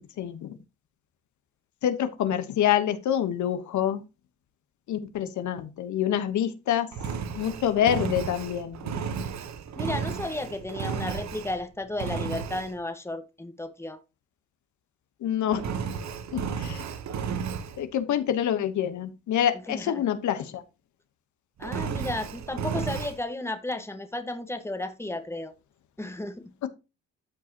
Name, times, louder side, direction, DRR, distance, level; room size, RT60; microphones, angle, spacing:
voice 1, 0.2-0.6 1.8-4.0 4.9-6.9 7.4-8.8 15.2-15.6 16.3-16.8 17.8-20.6 26.6-26.7, left 10 dB, 70° left, 1.2 m, -26 dB
Engine, 6.9-11.6 12.0-12.7 15.5-17.8 21.6-23.2, right 6 dB, 65° right, 1.1 m, -33 dB
voice 2, 9.8-14.0 19.7-20.0 21.6-25.5 26.0-26.5, left 2 dB, 10° left, 1.4 m, -33 dB
13.5 x 4.7 x 2.9 m
cardioid pair, 90°, 30 cm